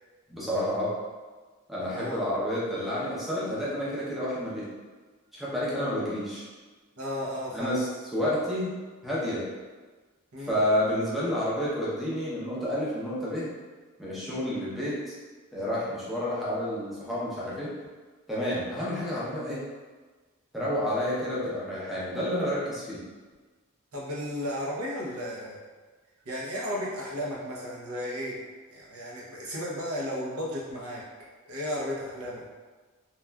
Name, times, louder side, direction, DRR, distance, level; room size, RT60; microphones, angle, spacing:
voice 1, 0.3-0.9 1.7-4.7 5.3-6.5 7.5-7.9 8.1-8.7 9.0-9.4 10.5-13.5 14.0-15.0 15.5-17.7 18.3-19.6 20.5-23.0, equal, ahead, -8 dB, 0.6 m, -29 dB
voice 2, 1.8-2.2 7.0-7.8 10.3-10.6 23.9-25.6 26.2-28.4 28.7-31.0 31.5-32.4, equal, 90° right, -5 dB, 0.7 m, -34 dB
3.0 x 2.3 x 2.2 m, 1.3 s
head